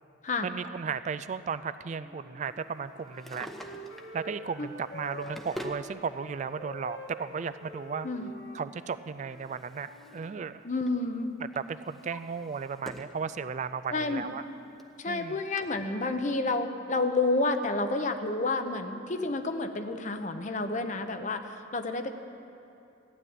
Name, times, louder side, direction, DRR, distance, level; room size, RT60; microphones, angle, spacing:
voice 1, 0.4-3.5 4.1-8.1 8.5-10.6 11.7-14.4 15.1-15.4, right 6 dB, 40° right, 13 dB, 0.3 m, -35 dB
Wind instrument woodwind instrument, 1.9-5.8 6.1-10.4, equal, 65° left, 1.9 m, -47 dB
Drawer open or close, 3.0-4.2 4.9-5.9 6.9-7.0 8.8-10.3 10.6-11.0 11.5-13.2 13.6-13.7 14.5-14.6 14.8-14.9 15.6-15.7, equal, ahead, 0.8 m, -45 dB
voice 2, 10.6-11.4 13.9-14.2 15.0-22.1, left 3 dB, 40° left, 8 dB, 0.8 m, -30 dB
15.0 x 10.0 x 8.8 m, 2.7 s
head